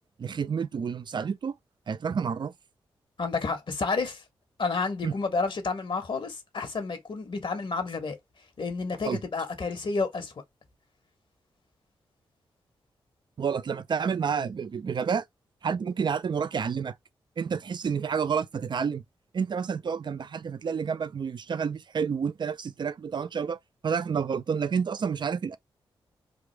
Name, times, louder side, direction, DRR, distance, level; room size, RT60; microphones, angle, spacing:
voice 1, 0.2-1.5 1.9-2.5 5.0-5.1 9.0-9.2 13.4-15.2 15.6-16.9 17.4-19.0 19.3-23.6 23.8-25.6, right 6 dB, 50° right, 0.5 m, -29 dB
voice 2, 3.2-4.2 4.6-8.2 8.6-10.3, left 4 dB, 60° left, 1.3 m, -30 dB
3.5 x 2.5 x 3.3 m
supercardioid pair, 45°, 10 cm